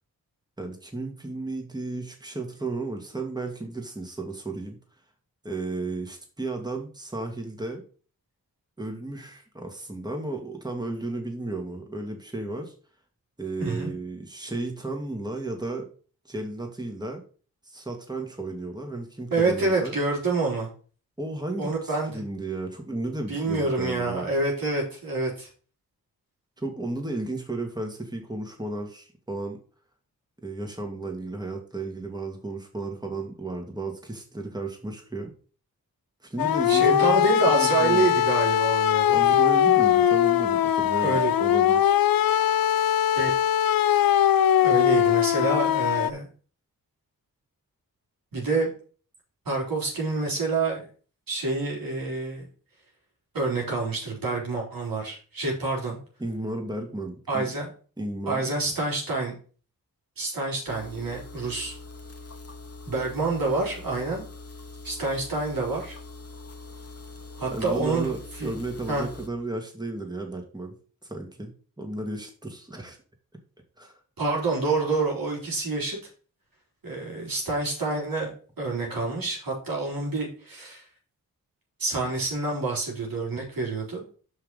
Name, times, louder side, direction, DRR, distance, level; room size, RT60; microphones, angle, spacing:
voice 1, 0.6-4.8 5.4-7.8 8.8-12.7 13.4-15.9 16.3-17.2 17.6-20.0 21.2-24.3 26.6-29.6 30.4-35.3 36.2-37.3 37.5-38.1 39.1-42.0 56.2-57.5 58.0-58.4 67.5-70.8 71.0-71.5 71.8-73.0 73.8-74.0, right 2 dB, 10° right, 3 dB, 2.0 m, -34 dB
voice 2, 13.6-13.9 19.3-20.7 21.6-22.2 23.3-25.5 36.7-39.2 41.0-41.3 43.2-43.3 43.6-44.2 44.6-46.3 48.3-48.7 49.5-50.9 51.3-52.5 53.3-56.0 57.3-57.7 58.3-59.4 60.2-61.7 62.9-64.2 64.8-66.0 67.4-68.1 68.4-68.5 68.9-69.1 74.2-76.0 76.8-80.8 81.8-84.0, right 3 dB, 75° right, -2 dB, 3.9 m, -27 dB
sound 1, 36.4-46.1, left 10 dB, 80° left, 0.5 m, -21 dB
sound 2, 60.7-69.3, left 3 dB, 45° left, 1.3 m, -43 dB
5.8 x 5.8 x 5.5 m, 0.40 s
cardioid pair, 60°, 35 cm